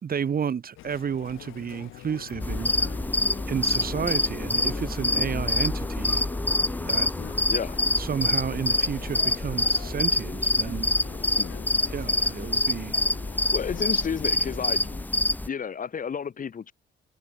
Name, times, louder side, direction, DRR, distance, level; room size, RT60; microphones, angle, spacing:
voice 1, 0.0-2.9 3.5-6.3 6.8-7.1 8.0-10.9 11.9-13.0, right 7 dB, 45° right, 2.8 m, -31 dB
Chatter, 0.8-15.1, left 16 dB, 90° left, 1.5 m, -44 dB
sound 1, 2.4-15.5, left 2 dB, 10° left, 0.7 m, -26 dB
voice 2, 13.5-14.8 15.5-16.7, left 7 dB, 45° left, 1.6 m, -31 dB
cardioid pair, 90°, 20 cm